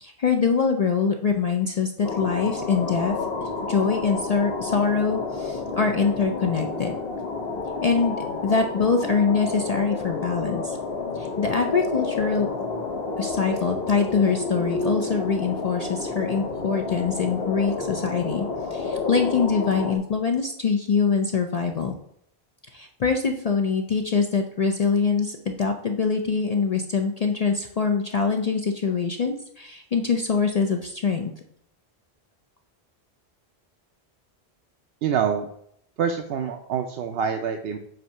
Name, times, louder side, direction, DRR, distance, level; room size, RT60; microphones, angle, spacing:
voice 1, 0.0-3.1 3.7-7.0 7.8-8.2 8.4-10.8 11.1-12.5 13.2-18.4 18.7-21.9 22.7-31.3, left 5 dB, 50° left, 4 dB, 0.5 m, -24 dB
sound 1, 2.0-20.0, left 3 dB, 70° left, 1.1 m, -30 dB
voice 2, 35.0-35.5 36.0-37.8, right 7 dB, 75° right, 5 dB, 0.8 m, -26 dB
7.7 x 2.7 x 5.4 m, 0.70 s
omnidirectional pair, 1.0 m